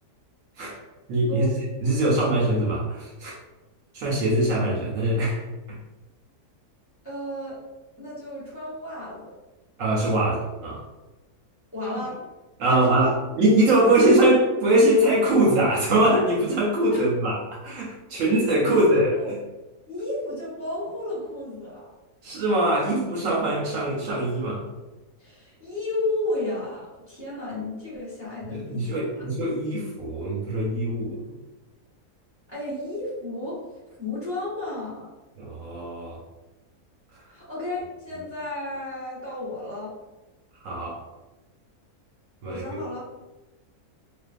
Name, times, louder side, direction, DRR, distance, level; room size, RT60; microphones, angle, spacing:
voice 1, 1.1-1.5 1.8-3.4 3.9-5.4 9.8-10.8 12.6-13.1 13.4-17.4 17.6-19.1 22.2-24.6 28.5-31.2 35.4-36.2 40.6-41.0 42.4-42.8, right 1 dB, 70° right, -3 dB, 0.9 m, -22 dB
voice 2, 7.0-7.6 8.0-9.3 11.7-12.3 12.7-13.2 16.9-17.1 18.7-19.3 19.9-21.9 25.2-29.2 32.5-33.6 34.0-35.1 37.3-39.9 42.4-43.0, left 1 dB, 15° right, -9 dB, 0.4 m, -32 dB
2.4 x 2.3 x 2.4 m, 1.1 s
omnidirectional pair, 1.6 m